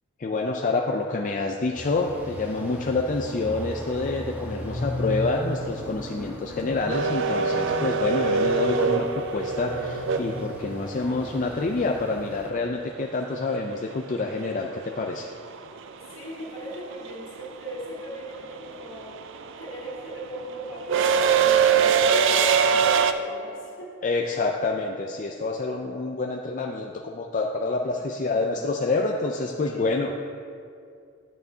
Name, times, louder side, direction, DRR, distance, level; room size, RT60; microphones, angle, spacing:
voice 1, 0.2-15.3 24.0-30.2, left 3 dB, 40° left, 2 dB, 0.4 m, -27 dB
sound 1, 1.7-12.5, left 1 dB, 10° right, 1.3 m, -36 dB
sound 2, 6.9-11.0 13.4-13.5 14.8-15.1 15.3-23.1, right 6 dB, 60° right, 0.4 m, -23 dB
voice 2, 16.1-19.2 19.6-24.0 27.7-28.4 29.7-29.8, right 1 dB, 75° left, -6 dB, 2.0 m, -39 dB
10.5 x 9.1 x 2.8 m, 2.4 s
head